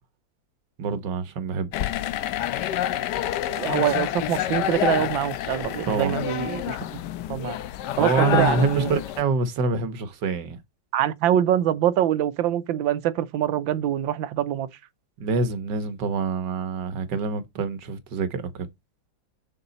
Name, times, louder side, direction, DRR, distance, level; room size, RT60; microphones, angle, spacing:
voice 1, 0.8-1.7 5.9-6.2 8.0-10.6 15.2-18.7, right 4 dB, 65° right, 1.7 m, -26 dB
sound 1, 1.7-9.2, left 12 dB, 70° left, 1.2 m, -28 dB
voice 2, 3.5-7.0 7.3-7.6 8.0-8.9 10.9-14.7, right 11 dB, 90° right, 1.5 m, -24 dB
7.0 x 6.8 x 4.1 m
omnidirectional pair, 2.1 m